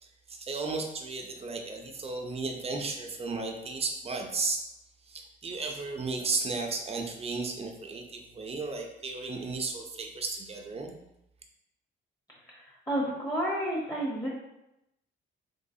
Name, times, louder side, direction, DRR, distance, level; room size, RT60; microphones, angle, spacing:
voice 1, 0.0-4.6 5.1-11.0, right 3 dB, 30° right, 3 dB, 0.6 m, -34 dB
voice 2, 12.5-14.3, right 1 dB, 20° left, -5 dB, 1.1 m, -31 dB
3.3 x 3.1 x 2.7 m, 0.86 s
cardioid pair, 90°, 20 cm